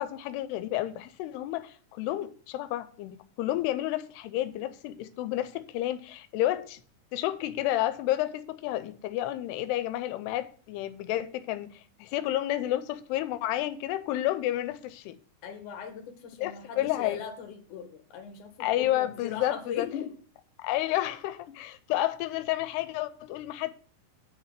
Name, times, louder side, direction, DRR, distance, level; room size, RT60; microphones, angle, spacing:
voice 1, 0.0-6.8 7.1-15.2 16.4-17.2 18.6-19.9 20.6-23.7, left 14 dB, 90° left, 2.7 m, -31 dB
voice 2, 15.4-20.1, left 7 dB, 60° left, 2.6 m, -39 dB
9.0 x 4.9 x 6.5 m
omnidirectional pair, 4.6 m